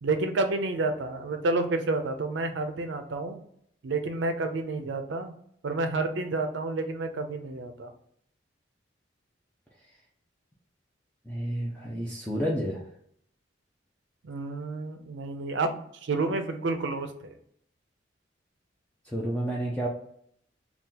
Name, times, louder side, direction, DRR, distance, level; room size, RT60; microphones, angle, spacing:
voice 1, 0.0-3.4 3.8-5.3 5.6-7.9 14.2-17.3, right 3 dB, 75° right, 7 dB, 0.4 m, -30 dB
voice 2, 11.3-12.8 19.1-19.9, equal, 10° left, -4 dB, 0.4 m, -30 dB
2.8 x 2.4 x 3.6 m, 0.67 s
head